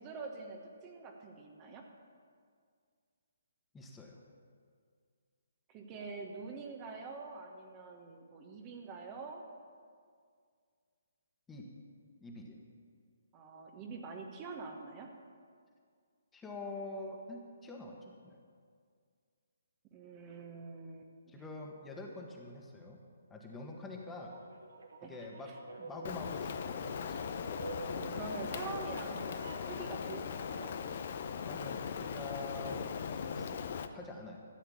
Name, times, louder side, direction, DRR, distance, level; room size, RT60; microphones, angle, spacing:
voice 1, 0.0-1.9 5.7-9.4 13.3-15.1 19.9-21.4 25.0-25.1 25.4-25.6 27.9-30.7, right 4 dB, 25° right, 2 dB, 1.2 m, -45 dB
voice 2, 3.7-4.2 11.5-11.7 12.2-12.6 16.3-17.9 18.2-18.4 21.3-23.0 23.3-24.3 25.0-25.5 25.8-27.3 31.3-32.8 33.1-33.6 33.9-34.4, left 2 dB, 10° left, 0 dB, 1.6 m, -45 dB
sound 1, 24.1-29.7, right 3 dB, 75° right, 1.5 m, -49 dB
Rain, 26.0-33.9, left 6 dB, 50° left, 0.7 m, -39 dB
13.5 x 7.8 x 7.3 m, 2.1 s
figure-of-eight pair, 135°, 0 cm